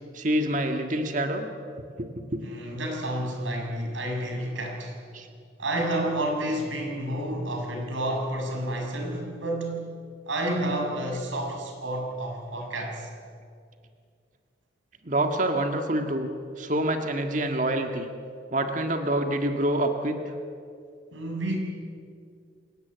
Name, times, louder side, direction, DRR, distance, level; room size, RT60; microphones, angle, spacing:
voice 1, 0.1-1.5 2.0-2.4 5.1-5.3 15.0-16.3 16.6-18.1 18.5-20.2, right 1 dB, 40° right, 5 dB, 1.8 m, -26 dB
voice 2, 2.4-5.0 5.6-9.9 10.3-13.1 21.1-21.6, right 1 dB, 90° right, 2 dB, 6.2 m, -30 dB
28.5 x 17.5 x 9.6 m, 2.3 s
head